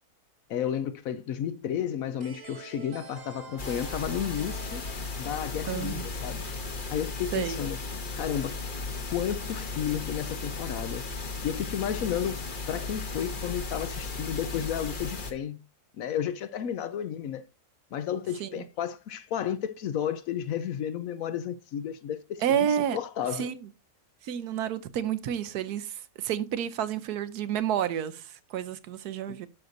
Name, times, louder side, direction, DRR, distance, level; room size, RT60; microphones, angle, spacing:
voice 1, 0.5-4.8 5.2-6.5 6.9-7.8 8.2-8.6 9.1-11.1 11.4-15.6 16.0-17.4 17.9-22.6 22.9-23.5 29.3-29.4, left 9 dB, 70° left, 0.9 m, -32 dB
sound 1, 2.2-6.8, right 6 dB, 50° right, 0.5 m, -47 dB
sound 2, 3.6-15.3, left 3 dB, 35° left, 1.0 m, -35 dB
voice 2, 5.7-6.0 7.3-7.6 18.4-18.6 22.4-23.0 23.3-23.7 24.2-29.5, right 9 dB, 75° right, 1.2 m, -30 dB
12.0 x 6.4 x 2.6 m
omnidirectional pair, 1.7 m